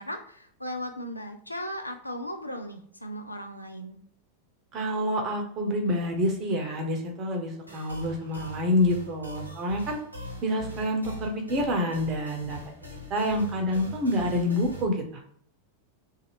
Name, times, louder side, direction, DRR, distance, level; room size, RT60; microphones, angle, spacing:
voice 1, 0.0-4.0, equal, 85° left, 6 dB, 0.4 m, -37 dB
voice 2, 4.7-10.0 10.4-12.6 13.1-15.0, left 1 dB, 30° right, 3 dB, 0.7 m, -27 dB
sound 1, 7.7-14.8, left 1 dB, 85° right, 0.9 m, -42 dB
2.7 x 2.3 x 2.9 m, 0.63 s
figure-of-eight pair, 90°, 0 cm